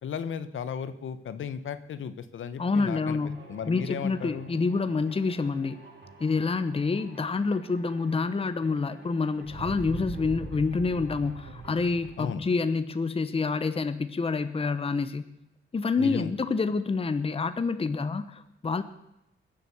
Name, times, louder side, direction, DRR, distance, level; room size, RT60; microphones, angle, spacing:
voice 1, 0.0-3.2 3.5-4.5 12.2-12.4 16.0-16.3, left 7 dB, 75° left, 12 dB, 1.1 m, -35 dB
voice 2, 2.6-5.8 6.2-15.3 15.7-18.8, left 4 dB, 30° left, 11 dB, 0.9 m, -28 dB
sound 1, 3.2-12.2, right 3 dB, 60° right, 3.7 m, -44 dB
21.0 x 7.8 x 7.1 m, 0.88 s
cardioid pair, 110°, 21 cm